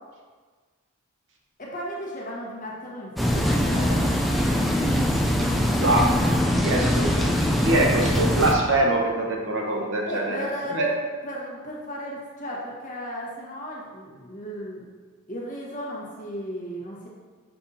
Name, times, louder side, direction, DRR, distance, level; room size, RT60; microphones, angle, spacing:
voice 1, 1.6-4.0 10.1-10.9 11.2-14.9 15.3-17.1, equal, 35° left, -4 dB, 1.2 m, -35 dB
sound 1, 3.2-8.6, equal, ahead, 0.3 m, -22 dB
voice 2, 5.8-6.2 6.6-10.9, right 1 dB, 55° right, 0 dB, 0.9 m, -24 dB
6.8 x 5.4 x 2.7 m, 1.5 s
head